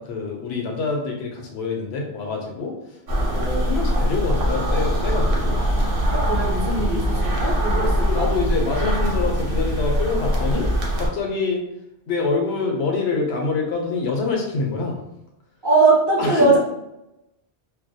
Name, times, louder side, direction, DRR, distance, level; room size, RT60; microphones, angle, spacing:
voice 1, 0.0-2.7 3.3-5.5 5.9-6.2 7.8-10.7 11.0-11.6 12.1-15.0 16.2-16.6, left 4 dB, 85° left, 1 dB, 0.9 m, -26 dB
sound 1, 3.1-11.1, equal, 65° right, 0.7 m, -22 dB
voice 2, 6.1-8.3 15.6-16.6, right 3 dB, 30° right, -4 dB, 0.5 m, -20 dB
2.2 x 2.1 x 2.6 m, 0.88 s
omnidirectional pair, 1.1 m